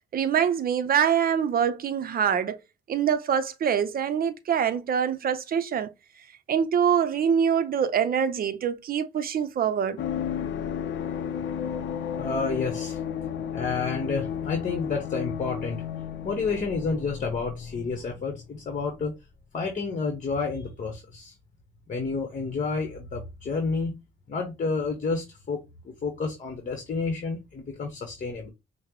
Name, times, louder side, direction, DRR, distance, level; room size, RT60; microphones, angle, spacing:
voice 1, 0.1-2.6 2.9-5.9 6.5-10.0, right 8 dB, 50° right, 0.6 m, -24 dB
sound 1, 10.0-18.5 18.7-18.9, left 8 dB, 65° left, 0.5 m, -33 dB
voice 2, 12.2-13.0 13.5-15.8 16.2-19.1 19.5-21.3 21.9-24.0 24.3-28.5, left 4 dB, 40° left, 0.9 m, -30 dB
5.6 x 2.1 x 3.0 m
cardioid pair, 90°, 20 cm